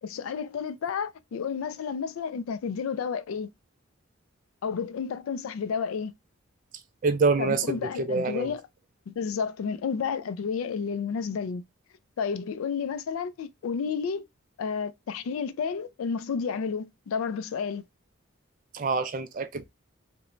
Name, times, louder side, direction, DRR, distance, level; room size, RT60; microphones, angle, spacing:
voice 1, 0.0-3.5 4.6-6.1 7.4-8.6 9.1-11.6 12.2-14.3 14.6-17.8, left 6 dB, 75° left, 0.3 m, -31 dB
voice 2, 7.0-8.5 18.7-19.7, right 4 dB, 40° right, 0.3 m, -26 dB
3.0 x 2.1 x 2.4 m
head